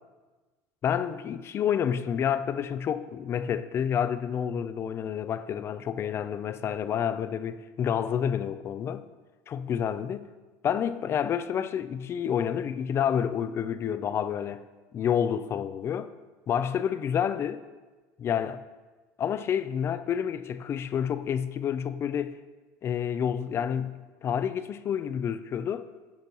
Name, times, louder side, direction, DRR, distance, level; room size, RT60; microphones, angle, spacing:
voice 1, 0.8-9.0 9.5-10.3 10.6-14.6 14.9-16.1 16.5-17.6 18.2-18.6 19.2-22.3 22.8-25.9, left 8 dB, 35° left, 0.4 m, -29 dB
8.5 x 4.5 x 5.9 m
supercardioid pair, 120°, 7 cm